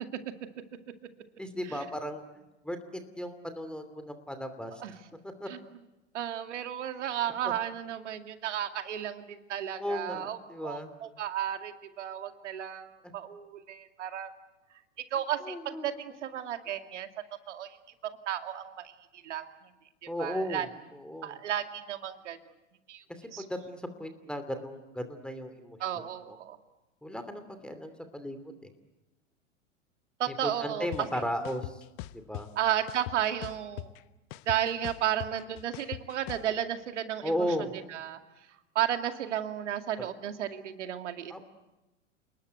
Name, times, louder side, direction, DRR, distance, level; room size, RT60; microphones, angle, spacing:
voice 1, 1.4-2.2 2.6-2.8 3.2-4.7 5.4-5.5 7.4-7.5 9.8-10.9 15.4-15.9 20.1-21.4 23.4-26.4 27.0-28.7 30.4-31.8 32.1-32.5 37.2-37.7 40.0-40.1 41.3-41.4, equal, ahead, 9 dB, 2.7 m, -35 dB
voice 2, 6.1-14.3 15.1-17.1 17.5-17.8 18.0-19.5 20.0-20.7 21.2-22.4 22.9-23.0 23.3-23.4 25.8-26.6 30.2-30.9 32.6-33.9 34.5-38.2 38.7-41.4, right 10 dB, 70° right, 8 dB, 2.3 m, -33 dB
sound 1, 30.9-31.0 31.4-32.4 32.9-34.0 34.3-36.5, left 18 dB, 45° left, 1.0 m, -40 dB
30.0 x 20.0 x 9.3 m, 1.0 s
hypercardioid pair, 100°, 37 cm